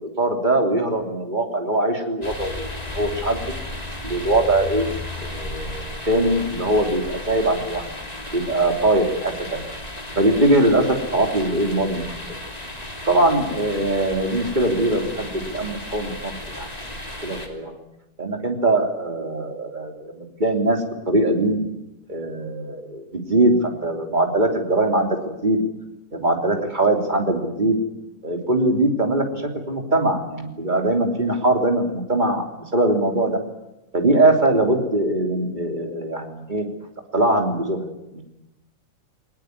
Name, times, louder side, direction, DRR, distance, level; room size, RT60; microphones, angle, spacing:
voice 1, 0.0-3.4 4.0-4.9 5.2-7.9 8.3-9.6 10.1-12.1 13.1-16.7 17.2-17.7 18.2-21.6 22.1-25.6 26.1-27.8 28.2-32.4 32.7-33.4 33.9-36.6 37.1-37.8 38.1-38.2, right 1 dB, 15° right, 3 dB, 3.0 m, -21 dB
sound 1, 2.2-17.5, left 1 dB, 10° left, 2.7 m, -34 dB
21.0 x 20.0 x 9.6 m, 0.93 s
omnidirectional pair, 3.7 m